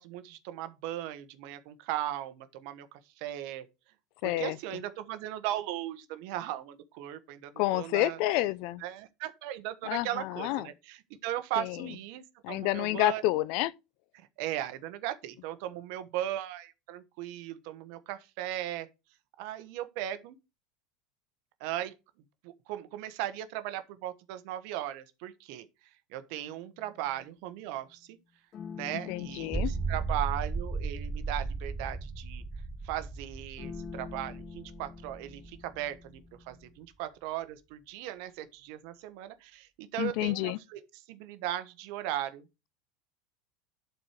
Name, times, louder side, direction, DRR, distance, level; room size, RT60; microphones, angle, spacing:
voice 1, 0.0-2.9 3.2-3.7 4.2-8.2 8.8-13.2 14.1-18.9 19.4-20.4 21.6-21.9 22.4-25.7 26.1-28.2 28.7-32.4 32.8-36.2 36.5-40.8 41.1-42.4, right 13 dB, 65° right, 1.2 m, -37 dB
voice 2, 4.2-4.6 7.6-8.8 9.9-10.7 11.6-11.9 12.4-13.7 29.1-29.7 40.0-40.6, left 16 dB, 60° left, 0.5 m, -29 dB
sound 1, 26.5-27.5 28.5-32.6 33.6-36.8, left 6 dB, 40° left, 1.1 m, -47 dB
sound 2, 29.4-35.8, right 4 dB, 10° right, 0.8 m, -35 dB
11.0 x 4.5 x 5.0 m
supercardioid pair, 130°, 0 cm